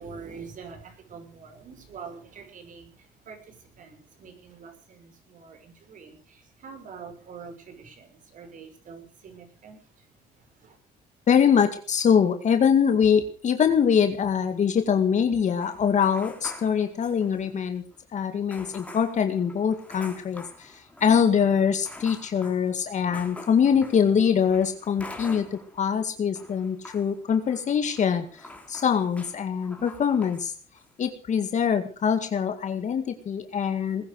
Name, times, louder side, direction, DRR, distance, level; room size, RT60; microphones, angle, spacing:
voice 1, 0.0-10.1 10.4-10.8, right 5 dB, 50° right, 6 dB, 6.1 m, -45 dB
voice 2, 11.3-17.8 18.1-30.5 31.0-34.1, left 7 dB, 45° left, 7 dB, 2.1 m, -23 dB
sound 1, 15.6-17.6 17.9-18.0 18.5-25.9 26.2-30.5 30.8-31.1, left 2 dB, 10° left, 3.9 m, -46 dB
20.0 x 10.5 x 6.5 m, 0.40 s
cardioid pair, 110°, 17 cm